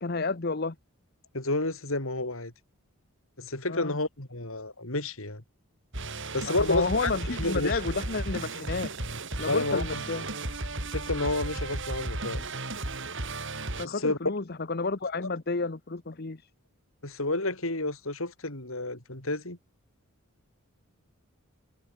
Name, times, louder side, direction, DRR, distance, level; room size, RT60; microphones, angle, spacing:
voice 1, 0.0-0.8 3.7-4.0 6.5-8.9 9.4-10.2 13.8-16.5, left 3 dB, 45° left, 0.9 m, -31 dB
voice 2, 1.3-2.5 3.4-5.4 6.3-7.1 7.4-7.8 9.5-10.0 10.9-12.4 13.8-14.2 17.0-19.6, left 2 dB, 70° left, 4.5 m, -30 dB
sound 1, 5.9-13.9, right 2 dB, 55° right, 6.3 m, -34 dB
head